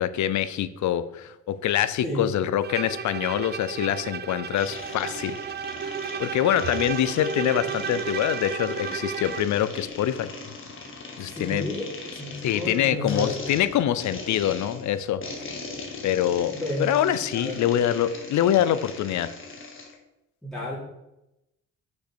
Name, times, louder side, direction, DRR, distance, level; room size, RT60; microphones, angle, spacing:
voice 1, 0.0-5.4 6.2-10.3 11.2-11.7 12.4-15.2 16.0-19.3, left 11 dB, 70° left, 15 dB, 0.6 m, -25 dB
voice 2, 2.0-2.3 11.3-11.9 12.2-13.3 16.5-16.9 17.3-17.6 20.4-20.8, left 1 dB, ahead, -7 dB, 3.4 m, -31 dB
Bowed string instrument, 2.6-9.6, right 7 dB, 35° right, 0.5 m, -33 dB
sound 1, 4.5-19.9, left 3 dB, 40° left, 1.9 m, -39 dB
6.5 x 5.3 x 6.3 m, 0.92 s
cardioid pair, 90°, 30 cm